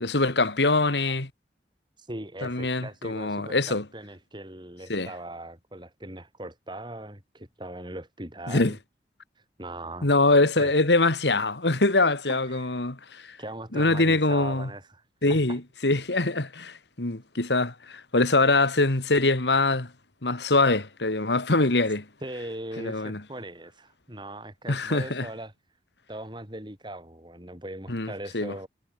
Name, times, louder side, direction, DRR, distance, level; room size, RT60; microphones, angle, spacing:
voice 1, 0.0-1.3 2.4-3.8 4.9-5.1 8.5-8.8 10.0-13.4 13.7-14.7 15.2-19.9 20.2-22.1 22.8-23.2 24.7-25.3 27.9-28.5, left 2 dB, 80° left, 2.2 m, -24 dB
voice 2, 2.0-8.8 9.3-10.7 12.3-12.8 13.4-15.0 15.3-15.6 22.2-25.5 26.1-28.7, right 1 dB, 25° right, 4.8 m, -40 dB
head